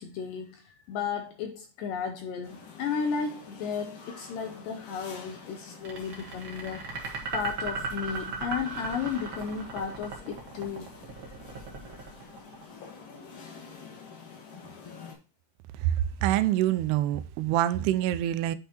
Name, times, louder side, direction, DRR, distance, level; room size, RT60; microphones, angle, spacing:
voice 1, 0.0-6.9 7.3-10.9, left 6 dB, 75° left, 2.0 m, -34 dB
sound 1, 2.4-15.1, left 5 dB, 55° left, 3.0 m, -47 dB
sound 2, 5.8-13.0, right 4 dB, 50° right, 1.6 m, -36 dB
voice 2, 16.2-18.6, right 13 dB, 85° right, 2.6 m, -25 dB
9.2 x 5.4 x 2.8 m
omnidirectional pair, 4.7 m